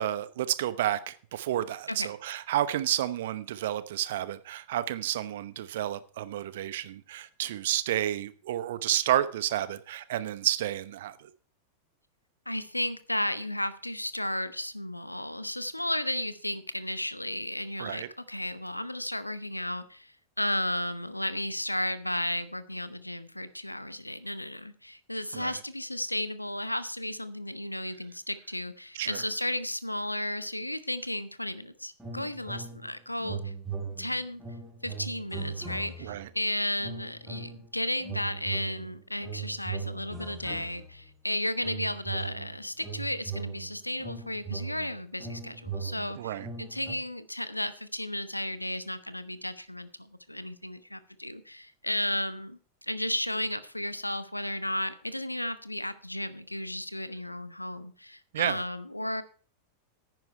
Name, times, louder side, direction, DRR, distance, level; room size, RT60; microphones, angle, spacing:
voice 1, 0.0-11.3 17.8-18.1 25.3-25.6 28.9-29.2 36.0-36.3 46.2-46.5 58.3-58.6, right 12 dB, 55° right, 15 dB, 0.8 m, -31 dB
voice 2, 12.5-33.5 34.0-34.4 34.8-59.2, left 1 dB, 85° left, 15 dB, 0.7 m, -34 dB
sound 1, 32.0-32.9 33.2-36.3 36.8-37.7 38.0-41.1 41.6-46.9, right 5 dB, 5° right, 4.9 m, -39 dB
10.5 x 9.3 x 4.5 m, 0.40 s
figure-of-eight pair, 90°, 0 cm